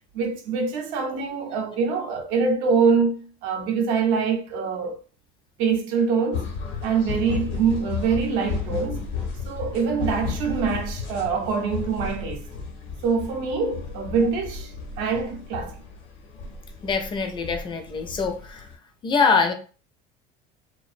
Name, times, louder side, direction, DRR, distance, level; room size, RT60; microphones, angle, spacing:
voice 1, 0.1-5.0 5.6-6.5 6.8-9.0 9.5-12.4 13.0-15.8, right 5 dB, 75° right, 0.6 m, -24 dB
sound 1, 6.3-18.7, left 5 dB, 65° left, 0.8 m, -33 dB
voice 2, 16.8-18.7 19.0-19.5, left 5 dB, 25° left, 0.4 m, -23 dB
2.4 x 2.1 x 2.4 m
cardioid pair, 120°, 20 cm